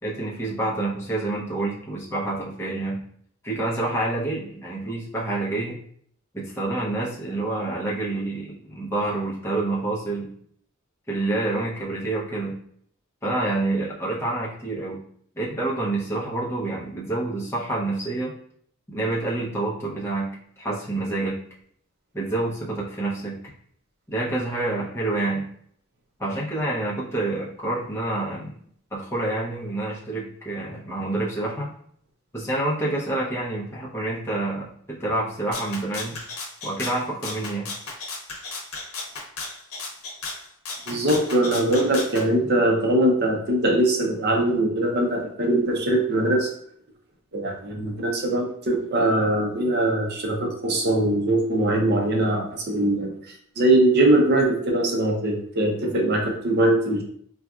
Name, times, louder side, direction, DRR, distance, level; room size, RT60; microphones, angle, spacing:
voice 1, 0.0-3.0 3.4-5.8 6.3-10.3 11.1-12.5 13.2-15.0 15.4-18.3 18.9-20.3 20.6-21.4 22.1-23.4 24.1-25.4 26.2-28.5 28.9-31.7 32.3-36.2 36.6-37.7, right 2 dB, 10° left, -5 dB, 0.7 m, -27 dB
Rattle (instrument), 35.5-42.3, left 3 dB, 90° left, 0.7 m, -35 dB
voice 2, 40.9-46.5 47.3-53.1 53.6-57.0, right 1 dB, 50° right, 1 dB, 0.6 m, -21 dB
4.0 x 2.3 x 2.4 m, 0.64 s
head